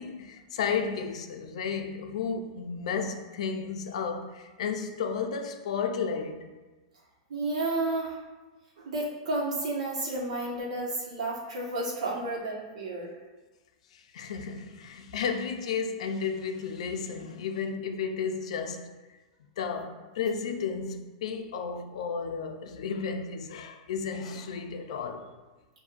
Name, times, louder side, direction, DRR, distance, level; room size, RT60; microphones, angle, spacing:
voice 1, 0.0-6.5 13.9-18.9 19.6-25.3, left 6 dB, 65° left, 0.4 m, -33 dB
voice 2, 7.3-8.2 8.8-13.1, right 2 dB, 80° right, 1.2 m, -31 dB
6.8 x 2.6 x 2.5 m
supercardioid pair, 180°, 4 cm